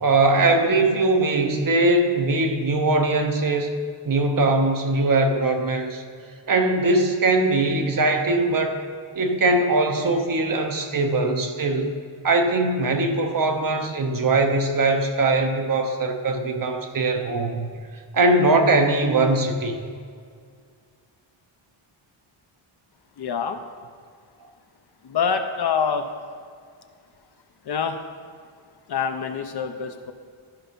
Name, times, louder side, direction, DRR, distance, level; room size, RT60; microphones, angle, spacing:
voice 1, 0.0-3.7 4.0-6.0 6.5-8.8 9.1-11.9 12.2-17.7 18.1-19.7, right 2 dB, 40° right, 5 dB, 0.8 m, -21 dB
voice 2, 23.2-23.6 25.0-26.0 27.7-28.0 28.9-30.1, left 6 dB, 50° left, 7 dB, 0.7 m, -25 dB
12.5 x 5.5 x 5.3 m, 2.1 s
wide cardioid pair, 160°, 50 cm